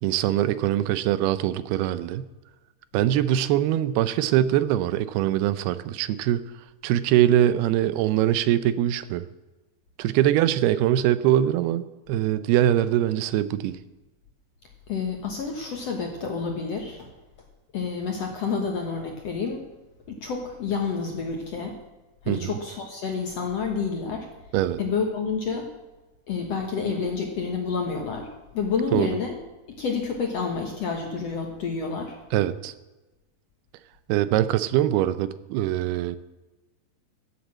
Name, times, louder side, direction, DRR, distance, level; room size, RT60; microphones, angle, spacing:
voice 1, 0.0-2.3 2.9-6.4 6.8-9.3 10.0-13.8 22.3-22.5 24.5-24.8 28.9-29.1 32.3-32.7 34.1-36.2, right 12 dB, 85° right, 14 dB, 2.6 m, -23 dB
voice 2, 14.9-17.1 17.7-19.6 20.1-21.8 22.2-24.3 24.8-25.7 26.3-29.4 29.7-32.2, left 5 dB, 60° left, 2 dB, 1.8 m, -29 dB
15.5 x 8.3 x 7.4 m, 1.1 s
omnidirectional pair, 4.6 m